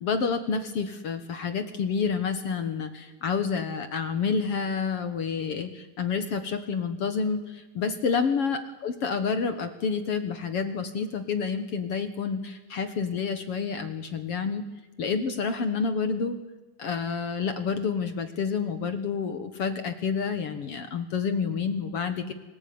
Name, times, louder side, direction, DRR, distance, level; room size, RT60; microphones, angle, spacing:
voice 1, 0.0-14.6 15.0-16.4 16.8-22.3, left 5 dB, 55° left, 9 dB, 1.8 m, -29 dB
26.0 x 19.5 x 9.6 m, 1.2 s
omnidirectional pair, 4.2 m